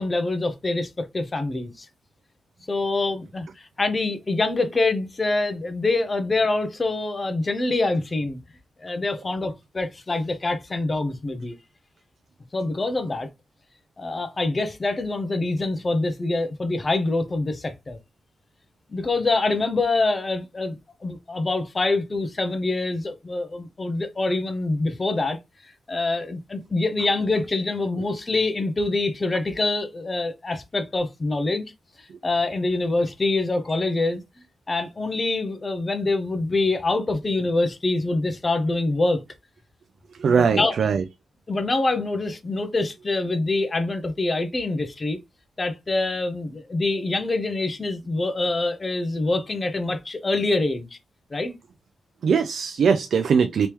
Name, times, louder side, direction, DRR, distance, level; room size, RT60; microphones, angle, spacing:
voice 1, 0.0-1.9 2.7-8.4 8.8-11.5 12.5-13.3 14.0-18.0 18.9-25.4 25.6-31.6 32.0-34.2 34.7-39.2 40.3-40.7 41.5-45.2 45.6-51.0 51.3-51.5, left 2 dB, 30° left, 0.7 m, -25 dB
voice 2, 40.2-41.0 52.2-53.7, right 6 dB, 70° right, 0.4 m, -20 dB
3.3 x 3.0 x 3.0 m
cardioid pair, 105°, 0 cm